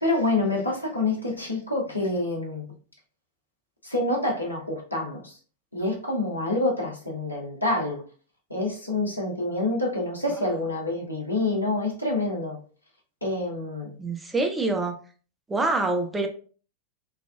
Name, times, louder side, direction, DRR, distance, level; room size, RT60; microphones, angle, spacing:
voice 1, 0.0-2.7 3.8-5.4 5.7-8.0 8.5-12.6 13.2-14.0, left 2 dB, 85° left, 0.9 m, -27 dB
voice 2, 14.0-14.9 15.5-16.3, right 2 dB, 10° right, 0.5 m, -25 dB
3.2 x 2.3 x 2.4 m
figure-of-eight pair, 90°, 0 cm